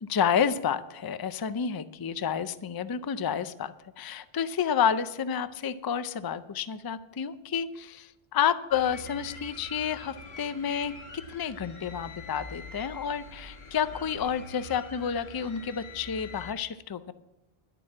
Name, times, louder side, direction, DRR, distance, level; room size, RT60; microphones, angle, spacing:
voice 1, 0.0-17.1, left 7 dB, 40° left, 14 dB, 0.3 m, -30 dB
sound 1, 8.7-16.5, left 2 dB, 75° left, 1.5 m, -45 dB
11.0 x 6.8 x 8.6 m, 0.90 s
omnidirectional pair, 1.1 m